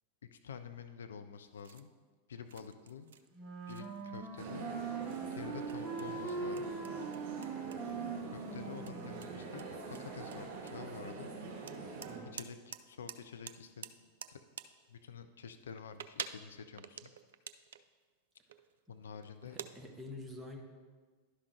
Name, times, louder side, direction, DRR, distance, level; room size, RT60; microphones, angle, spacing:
voice 1, 0.3-1.9 2.3-3.1 3.7-4.7 5.3-6.7 7.1-7.3 8.3-9.7 10.0-11.3 12.3-13.9 14.3-14.4 14.9-17.1 18.9-19.6, left 6 dB, 65° left, 9 dB, 0.4 m, -48 dB
sound 1, 1.4-1.9 2.5-3.4 3.7-4.3 4.6-4.8 5.1-7.8 8.1-8.3 8.8-8.9 9.2-11.0 11.7-12.8 13.1-13.2 13.5-14.7 15.6-17.9 18.5-18.8 19.2-19.7, right 8 dB, 60° right, 0.3 m, -47 dB
Wind instrument woodwind instrument, 3.3-9.5, right 5 dB, 25° right, 1.0 m, -41 dB
sound 2, 4.4-12.2, right 4 dB, 40° right, 2.4 m, -45 dB
voice 2, 19.4-20.6, left 2 dB, 5° right, 0 dB, 1.1 m, -47 dB
11.0 x 5.5 x 3.2 m, 1.5 s
figure-of-eight pair, 90°, 0 cm